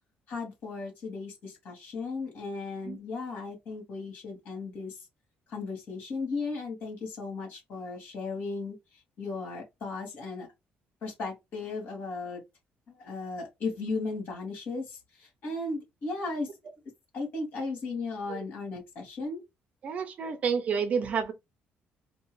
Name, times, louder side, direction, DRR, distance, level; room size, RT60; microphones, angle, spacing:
voice 1, 0.3-5.0 5.5-8.8 9.2-10.5 11.0-12.4 12.9-16.5 17.1-19.4, left 3 dB, 55° left, 2.9 m, -36 dB
voice 2, 19.8-21.3, right 6 dB, 35° right, 0.6 m, -29 dB
4.4 x 2.8 x 3.1 m
cardioid pair, 180°, 4 cm